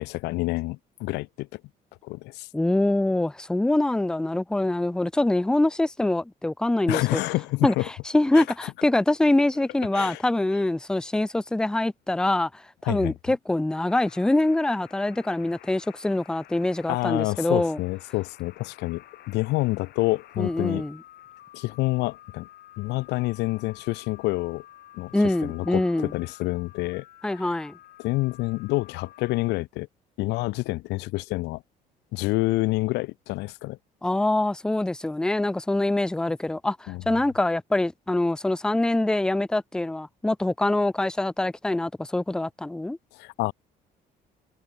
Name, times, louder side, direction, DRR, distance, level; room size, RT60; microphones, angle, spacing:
voice 1, 0.0-1.6 2.0-2.5 6.9-7.9 8.3-8.4 9.9-10.2 12.8-13.1 16.9-20.8 21.5-22.5 22.8-24.6 24.9-25.1 25.4-27.0 27.3-27.5 28.0-29.9 30.2-31.6 32.1-33.8 36.9-37.0 43.1-43.5, left 21 dB, 85° left, 0.6 m, -28 dB
voice 2, 2.5-7.2 7.6-7.7 8.1-17.8 20.4-21.0 25.1-26.1 27.2-27.7 34.0-43.0, left 2 dB, 5° left, 0.5 m, -24 dB
sound 1, 13.8-29.5, left 13 dB, 70° left, 3.6 m, -50 dB
cardioid pair, 110°, 17 cm